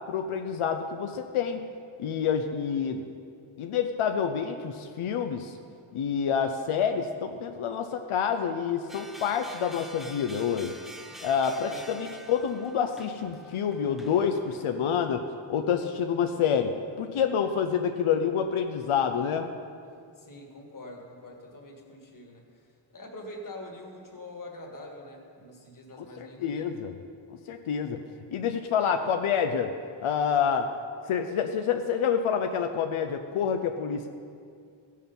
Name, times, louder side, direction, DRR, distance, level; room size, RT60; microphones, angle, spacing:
voice 1, 0.1-1.7 2.0-3.0 3.6-5.5 5.9-10.8 11.2-19.5 26.0-26.9 27.5-28.0 28.3-30.7 31.1-34.1, left 7 dB, 90° left, 6 dB, 0.7 m, -28 dB
sound 1, 8.9-14.8, equal, ahead, 0.5 m, -47 dB
voice 2, 20.2-26.7, left 1 dB, 40° left, 1 dB, 1.7 m, -45 dB
16.5 x 6.6 x 5.3 m, 2.3 s
wide cardioid pair, 160°, 48 cm